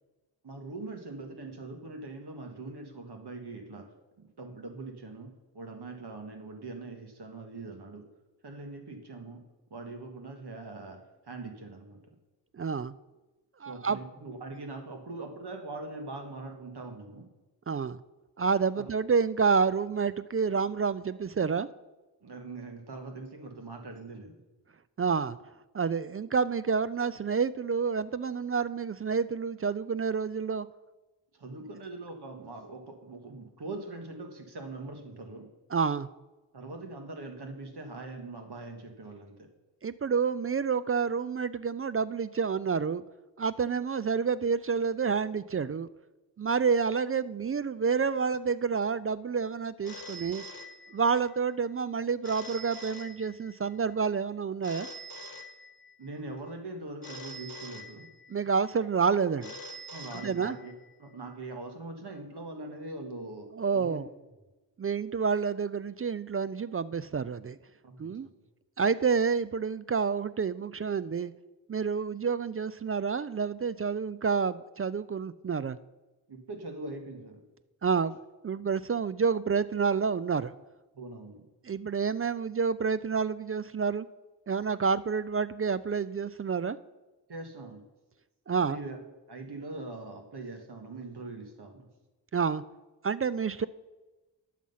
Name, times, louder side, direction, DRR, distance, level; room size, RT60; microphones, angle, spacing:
voice 1, 0.4-3.9 4.2-8.0 8.4-9.4 9.7-11.0 11.3-12.0 13.6-17.3 22.2-24.4 31.3-35.4 36.5-39.3 56.0-58.1 59.9-60.7 61.0-63.5 63.7-64.0 67.8-68.3 76.3-77.4 80.9-81.5 87.3-87.8 88.6-89.0 89.3-91.9, right 2 dB, 65° right, 4 dB, 1.9 m, -42 dB
voice 2, 12.5-12.9 13.6-14.0 17.7-18.0 18.4-21.7 25.0-25.4 25.7-30.7 35.7-36.1 39.8-43.0 43.4-45.9 46.4-50.5 50.9-54.9 58.3-59.5 60.1-60.6 63.5-64.1 64.8-67.6 68.0-68.3 68.8-71.3 71.7-75.8 77.8-78.2 78.4-80.6 81.6-84.1 84.5-86.8 88.5-88.8 92.3-92.6 93.0-93.7, right 5 dB, 35° right, 15 dB, 0.4 m, -29 dB
Telephone, 49.8-51.3 52.2-53.7 54.6-56.1 57.0-58.5 59.4-60.9, equal, 55° left, 1.1 m, -45 dB
10.0 x 7.3 x 5.6 m, 1.1 s
cardioid pair, 50°, 44 cm